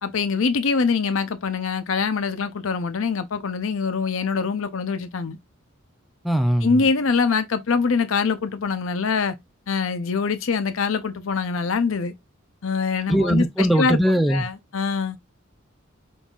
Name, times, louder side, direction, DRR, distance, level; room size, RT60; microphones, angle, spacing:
voice 1, 0.0-5.4 6.6-9.4 9.7-12.1 12.6-14.0 14.3-15.2, left 5 dB, 70° left, 0.6 m, -24 dB
voice 2, 6.2-6.8 13.1-14.4, equal, ahead, 0.3 m, -20 dB
5.3 x 2.6 x 2.4 m
head